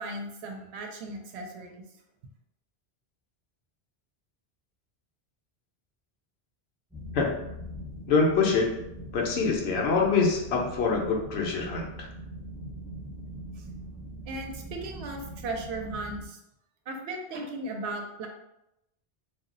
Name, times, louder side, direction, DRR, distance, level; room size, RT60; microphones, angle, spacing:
voice 1, 0.0-1.8 13.6-13.7 14.3-16.4 16.9-18.3, right 2 dB, 90° right, 3 dB, 0.8 m, -36 dB
sound 1, 6.9-16.2, right 1 dB, ahead, 0.6 m, -41 dB
voice 2, 8.1-8.8 9.1-12.1, left 4 dB, 80° left, 0 dB, 0.9 m, -25 dB
2.3 x 2.0 x 3.7 m, 0.86 s
omnidirectional pair, 1.1 m